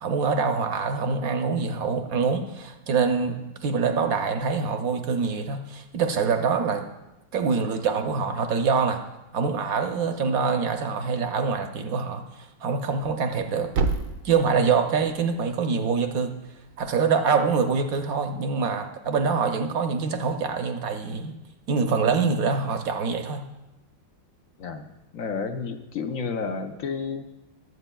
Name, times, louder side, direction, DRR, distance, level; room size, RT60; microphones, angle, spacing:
voice 1, 0.0-6.9 7.3-9.0 9.3-13.7 14.2-16.3 16.8-21.3 21.7-23.4, right 5 dB, 60° right, 6 dB, 1.0 m, -25 dB
Thump thud, 12.8-16.9, right 4 dB, 85° right, 1.5 m, -33 dB
voice 2, 25.1-27.2, left 5 dB, 60° left, 7 dB, 0.9 m, -31 dB
20.5 x 8.0 x 2.3 m, 0.97 s
omnidirectional pair, 2.0 m